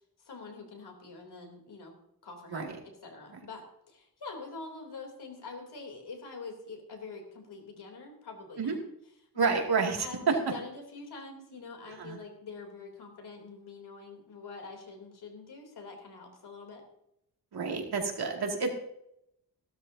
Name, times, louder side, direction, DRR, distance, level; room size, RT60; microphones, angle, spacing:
voice 1, 0.2-1.9 2.2-8.8 9.3-9.6 10.0-16.8, left 4 dB, 85° left, 3 dB, 3.3 m, -45 dB
voice 2, 9.4-10.4 12.0-12.2 17.5-18.7, right 5 dB, 80° right, 1 dB, 2.5 m, -29 dB
16.0 x 12.5 x 2.8 m, 0.77 s
wide cardioid pair, 125°, 38 cm